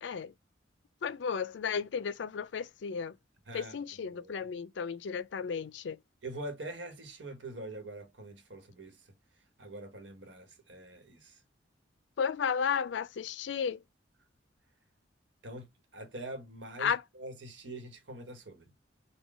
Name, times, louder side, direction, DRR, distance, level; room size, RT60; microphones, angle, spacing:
voice 1, 0.0-0.3 1.0-3.2 3.5-6.0 12.2-13.8 16.8-17.0, left 6 dB, 70° left, 0.4 m, -33 dB
voice 2, 3.5-4.4 6.2-9.0 9.6-11.4 15.4-18.7, right 2 dB, 75° right, 1.1 m, -44 dB
3.8 x 2.2 x 3.5 m
head